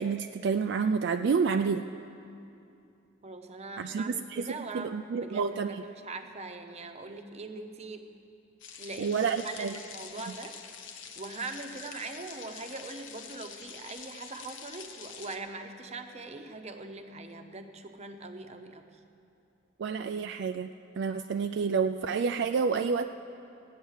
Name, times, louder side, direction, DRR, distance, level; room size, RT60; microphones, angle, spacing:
voice 1, 0.0-1.9 3.8-5.8 9.0-9.7 19.8-20.7 21.0-23.1, right 5 dB, 65° right, 7 dB, 0.3 m, -29 dB
voice 2, 3.2-8.1 8.8-10.6 11.2-18.9, right 3 dB, 35° right, 6 dB, 0.8 m, -42 dB
sound 1, 8.6-15.4, left 7 dB, 75° left, 0.8 m, -46 dB
16.0 x 9.0 x 6.4 m, 2.7 s
head